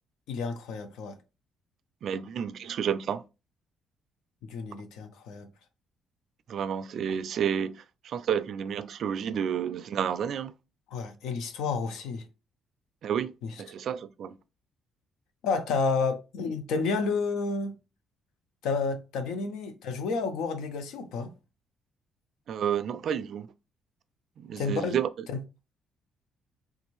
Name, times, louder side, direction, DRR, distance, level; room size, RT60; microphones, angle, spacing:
voice 1, 0.3-1.2 4.4-5.5 10.9-12.2 13.4-13.6 15.4-17.7 18.6-21.3 24.6-25.0 25.3-25.4, left 4 dB, 85° left, 0.6 m, -30 dB
voice 2, 2.0-3.2 6.5-10.5 13.0-14.4 22.5-23.5 24.4-25.1, right 8 dB, 60° right, 0.3 m, -30 dB
3.5 x 2.6 x 3.0 m
cardioid pair, 100°, 0 cm